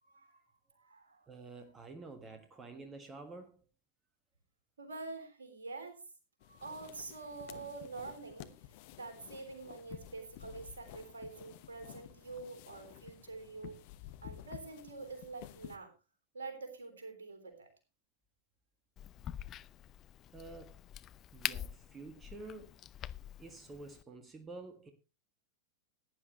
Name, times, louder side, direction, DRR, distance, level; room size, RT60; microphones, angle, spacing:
voice 1, 0.0-1.3 4.8-6.0 6.5-8.5 8.9-13.8 14.2-15.9 16.3-17.7, right 3 dB, 70° right, 3.5 m, -46 dB
voice 2, 1.3-3.6 20.3-20.8 21.3-22.8 23.4-24.9, right 3 dB, 20° right, 1.7 m, -49 dB
sound 1, 6.4-15.8, left 13 dB, 50° left, 1.0 m, -52 dB
Crack, 19.0-24.0, left 11 dB, 30° left, 0.6 m, -44 dB
17.0 x 10.0 x 3.2 m
figure-of-eight pair, 90°, 0 cm